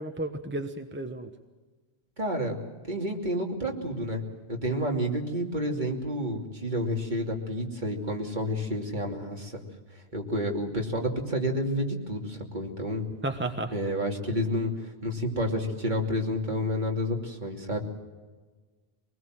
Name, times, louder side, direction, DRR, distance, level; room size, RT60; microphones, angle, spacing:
voice 1, 0.0-1.3 13.2-13.7, right 2 dB, 10° right, 6 dB, 1.1 m, -32 dB
voice 2, 2.2-2.6 2.9-4.2 4.5-9.6 10.1-13.1 13.7-17.8, equal, 45° right, 1 dB, 3.1 m, -30 dB
24.0 x 20.0 x 7.6 m, 1.3 s
omnidirectional pair, 1.1 m